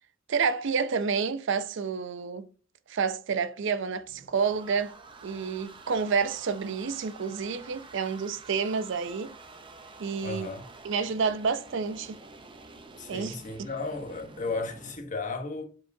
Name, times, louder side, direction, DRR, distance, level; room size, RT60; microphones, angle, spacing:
voice 1, 0.3-2.5 2.9-4.9 5.2-9.3 10.0-10.5 10.8-12.2 13.1-13.7, right 5 dB, 65° right, 0.5 m, -29 dB
sound 1, 3.7-15.0, right 3 dB, 25° right, 0.6 m, -49 dB
voice 2, 10.2-10.7 13.0-15.6, left 3 dB, 40° left, 1.0 m, -34 dB
7.4 x 4.7 x 2.6 m
head